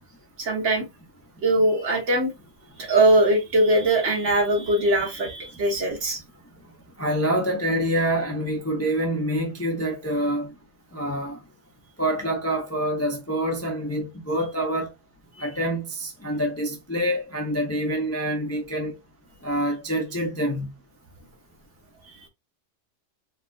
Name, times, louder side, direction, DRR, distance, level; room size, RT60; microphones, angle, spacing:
voice 1, 0.4-0.9 1.4-2.3 2.8-6.2, right 1 dB, 75° right, 1.6 m, -21 dB
voice 2, 7.0-10.5 10.9-11.4 12.0-14.9 15.4-18.9 19.4-20.7, right 1 dB, 20° left, 0.4 m, -26 dB
4.0 x 2.4 x 2.3 m
omnidirectional pair, 1.2 m